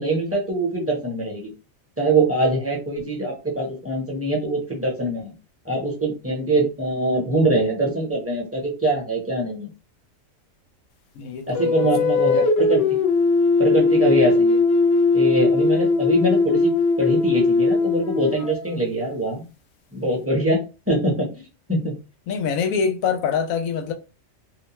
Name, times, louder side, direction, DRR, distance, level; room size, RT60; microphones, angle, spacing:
voice 1, 0.0-1.5 2.0-5.3 5.6-9.7 11.5-12.8 13.6-14.6 15.1-16.7 17.0-19.4 19.9-21.3 21.7-21.9, right 2 dB, 15° right, 0.7 m, -23 dB
voice 2, 11.2-11.9 22.3-23.9, left 6 dB, 90° left, 1.0 m, -25 dB
sound 1, 11.5-18.9, left 4 dB, 65° left, 0.8 m, -19 dB
2.5 x 2.1 x 2.9 m
omnidirectional pair, 1.4 m